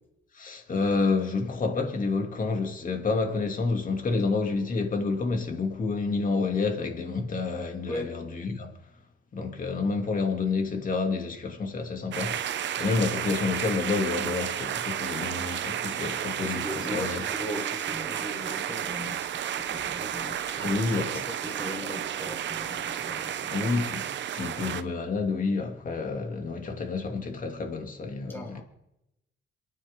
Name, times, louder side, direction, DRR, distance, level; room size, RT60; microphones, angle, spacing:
voice 1, 0.3-8.7 9.3-17.2 20.6-21.2 23.5-24.1 24.3-28.6, left 4 dB, 45° left, 2.7 m, -29 dB
voice 2, 7.9-8.3 16.4-20.8 21.3-23.5 28.3-28.6, left 1 dB, 10° left, 6.6 m, -39 dB
sound 1, 12.1-24.8, right 10 dB, 65° right, 0.9 m, -32 dB
28.0 x 9.4 x 3.8 m
cardioid pair, 90°, 20 cm